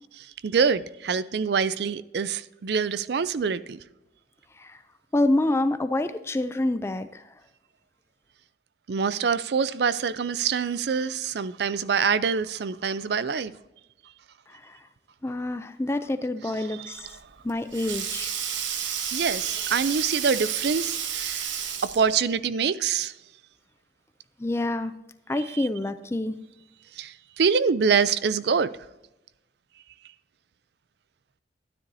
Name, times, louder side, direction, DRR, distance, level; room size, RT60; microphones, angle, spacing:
voice 1, 0.2-3.8 8.9-13.5 16.7-17.2 18.8-21.5 21.8-23.1 25.5-25.7 26.9-28.7, right 6 dB, 60° right, 0.4 m, -25 dB
voice 2, 5.1-7.2 14.7-14.8 15.2-17.1 17.4-18.3 24.4-24.9 25.3-26.4, left 2 dB, 15° left, 0.3 m, -27 dB
Sink (filling or washing), 17.1-22.2, right 8 dB, 90° right, 1.0 m, -31 dB
12.5 x 9.9 x 2.7 m
head